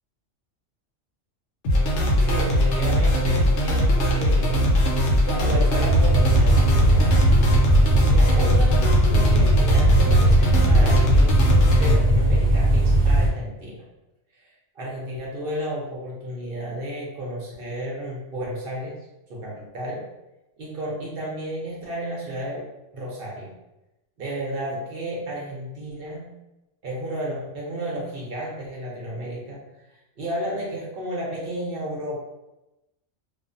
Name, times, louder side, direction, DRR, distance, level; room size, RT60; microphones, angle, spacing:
sound 1, 1.6-11.9, equal, 75° left, 0.9 m, -20 dB
voice 1, 2.2-4.6 5.2-7.1 8.1-13.8 14.4-14.5 14.8-19.0 19.3-20.0 20.6-22.7 22.9-23.5 24.2-26.3 26.8-29.6 30.2-32.2, right 1 dB, 55° right, -4 dB, 0.8 m, -32 dB
sound 2, 5.8-13.3, right 1 dB, 85° right, 1.1 m, -19 dB
2.4 x 2.1 x 2.5 m, 0.95 s
omnidirectional pair, 1.3 m